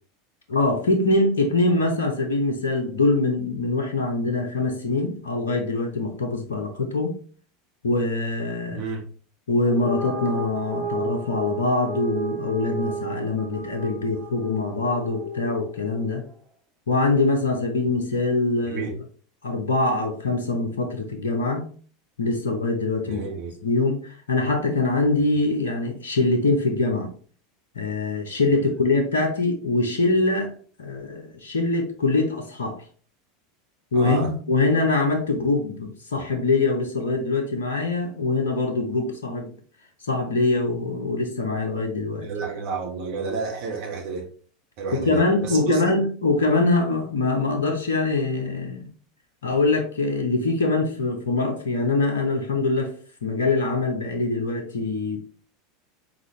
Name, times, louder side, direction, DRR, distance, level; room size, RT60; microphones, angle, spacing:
voice 1, 0.5-7.2 7.8-8.8 9.5-16.2 16.9-18.9 19.4-21.7 22.2-23.2 23.6-27.1 27.8-30.5 30.8-32.8 33.9-39.5 40.0-42.3 44.9-48.9 49.4-52.9 53.2-55.2, left 3 dB, 70° left, 0.7 m, -23 dB
voice 2, 8.7-9.0 18.7-18.9 23.1-23.5 33.9-34.3 42.2-44.3 44.8-45.8, right 5 dB, 55° right, 1.3 m, -30 dB
sound 1, 9.6-16.2, right 2 dB, 30° right, 2.4 m, -33 dB
4.2 x 3.8 x 3.1 m
figure-of-eight pair, 80°, 0 cm